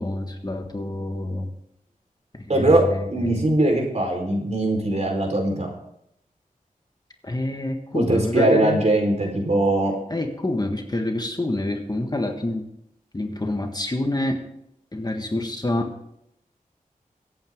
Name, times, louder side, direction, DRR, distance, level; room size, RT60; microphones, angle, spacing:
voice 1, 0.0-1.5 2.3-3.4 7.2-8.8 10.1-12.7 13.1-14.4 14.9-15.9, left 1 dB, 30° left, 4 dB, 1.6 m, -27 dB
voice 2, 2.5-2.8 3.1-5.7 7.9-9.9, right 1 dB, 50° right, 2 dB, 4.4 m, -21 dB
24.5 x 8.9 x 3.8 m, 0.76 s
wide cardioid pair, 80°, 15 cm